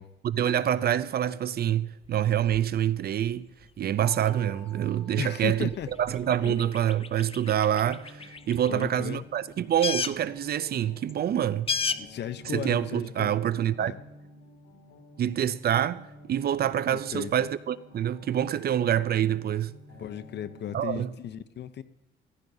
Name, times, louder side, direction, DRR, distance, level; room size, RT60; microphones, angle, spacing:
voice 1, 0.2-3.5 3.8-5.7 6.0-11.7 12.5-13.9 15.2-19.7 20.7-21.1, right 10 dB, 50° right, 0.5 m, -26 dB
sound 1, 2.0-9.4 9.6-12.7, left 5 dB, 30° left, 0.5 m, -37 dB
Mallet percussion, 4.0-6.5, left 5 dB, 5° right, 1.9 m, -53 dB
voice 2, 5.2-5.9 6.4-6.6 8.7-9.2 12.0-13.4 13.8-14.0 16.9-17.3 20.0-21.8, left 9 dB, 60° left, 0.7 m, -35 dB
sound 2, 7.8-20.8, left 1 dB, 85° left, 3.4 m, -51 dB
16.0 x 15.0 x 2.7 m
cardioid pair, 90°, 20 cm